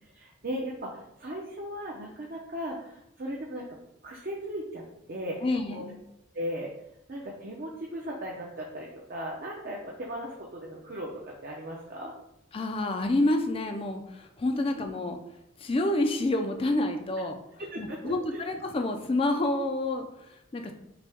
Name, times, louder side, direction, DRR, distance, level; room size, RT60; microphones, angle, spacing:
voice 1, 0.0-3.7 4.0-5.4 5.7-5.8 6.3-6.7 7.1-12.1 14.6-14.9 17.6-18.5, equal, 50° right, -2 dB, 0.7 m, -37 dB
voice 2, 5.4-6.0 12.5-15.2 15.6-17.4 17.8-20.7, left 2 dB, 30° left, 5 dB, 0.4 m, -28 dB
5.8 x 2.2 x 3.4 m, 0.84 s
head